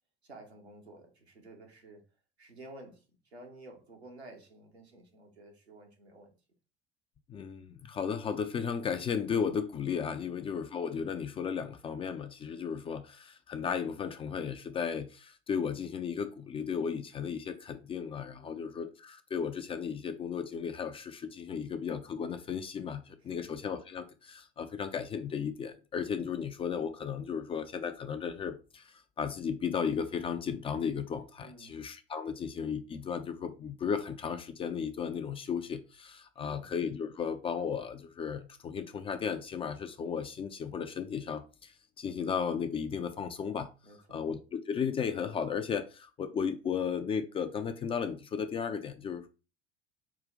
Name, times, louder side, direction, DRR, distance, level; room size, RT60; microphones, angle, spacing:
voice 1, 0.2-2.0 2.4-6.3 10.2-10.4 18.4-18.7 23.2-23.4 31.4-31.8 36.4-36.7 43.8-44.2, right 2 dB, 85° right, 1.0 m, -52 dB
voice 2, 7.3-43.7 44.1-49.3, left 7 dB, 20° left, 0.3 m, -35 dB
4.8 x 2.4 x 3.7 m
figure-of-eight pair, 70°, 32 cm